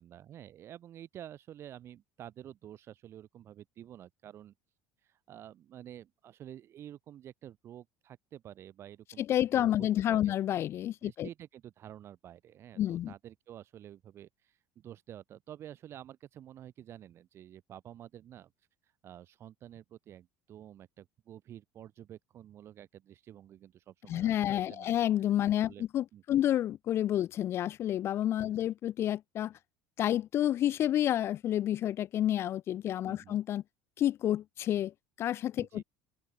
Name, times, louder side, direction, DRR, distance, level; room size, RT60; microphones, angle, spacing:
voice 1, 0.0-4.5 5.0-9.2 9.6-10.3 11.0-18.5 19.0-24.9 25.7-25.8 26.1-26.4 28.4-28.7 33.1-33.4 35.6-35.8, right 11 dB, 45° right, 1.5 m, -50 dB
voice 2, 9.2-11.3 12.8-13.1 24.1-29.5 30.0-33.6 34.0-35.8, left 12 dB, 40° left, 0.4 m, -29 dB
open air
supercardioid pair, 120°, 6 cm